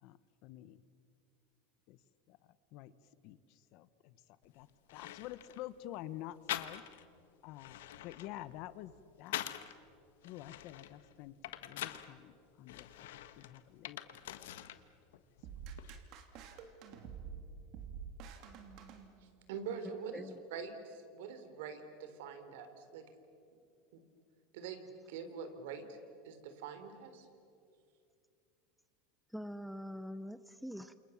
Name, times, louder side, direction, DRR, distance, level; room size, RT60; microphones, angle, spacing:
voice 1, 0.0-0.8 1.9-2.0 2.3-2.4 2.7-2.9 3.2-3.4 3.7-4.2 4.5-6.8 7.4-7.8 8.0-8.9 9.2-9.4 10.2-11.3 11.6-13.1 13.4-14.0 14.4-14.5, left 14 dB, 50° left, 15 dB, 1.1 m, -48 dB
sound 1, 4.4-4.5 4.9-5.6 6.5-7.1 7.5-9.8 10.2-12.1 12.7-14.8 15.1-15.9, left 13 dB, 90° left, 1.4 m, -44 dB
sound 2, 15.4-19.6, right 6 dB, 45° right, 3.0 m, -49 dB
voice 2, 19.2-20.2 20.5-23.0 23.9-24.0 24.5-25.8 26.2-27.3, right 6 dB, 75° right, 9 dB, 3.7 m, -45 dB
voice 3, 29.3-31.0, equal, ahead, 13 dB, 0.6 m, -44 dB
29.0 x 28.5 x 7.3 m, 2.4 s
supercardioid pair, 160°, 0 cm